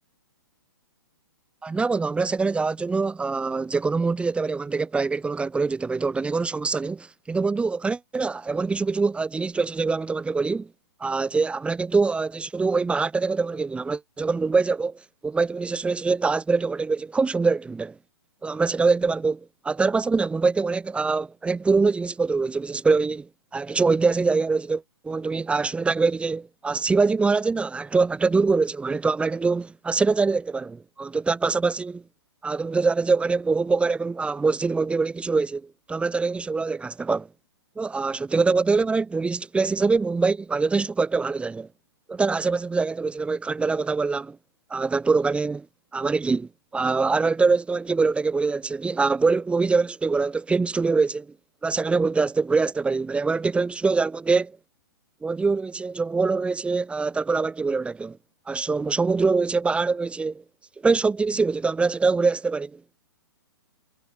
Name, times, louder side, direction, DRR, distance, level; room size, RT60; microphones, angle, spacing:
voice 1, 1.6-10.7 11.0-17.9 18.4-19.4 19.6-32.0 32.4-37.3 37.8-41.7 42.1-44.4 44.7-45.7 45.9-51.3 51.6-54.6 55.2-58.2 58.5-60.4 60.8-62.8, right 4 dB, 10° right, 7.9 m, -24 dB
figure-of-eight pair, 120°, 13 cm